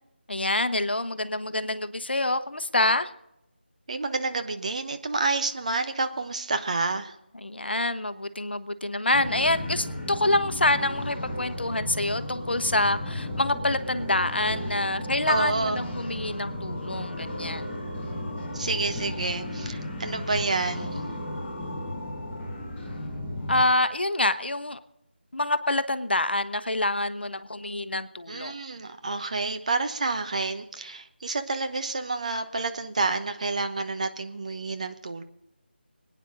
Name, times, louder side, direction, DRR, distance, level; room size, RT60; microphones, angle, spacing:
voice 1, 0.3-3.1 7.4-17.7 23.5-24.8 25.3-28.5, left 2 dB, 65° left, 11 dB, 1.0 m, -26 dB
voice 2, 3.9-7.1 15.3-15.8 18.5-20.9 28.3-35.2, right 3 dB, 40° right, 7 dB, 1.0 m, -29 dB
sound 1, 9.1-23.6, left 1 dB, 10° left, 1.5 m, -34 dB
25.0 x 9.5 x 3.8 m, 0.85 s
figure-of-eight pair, 160°, 6 cm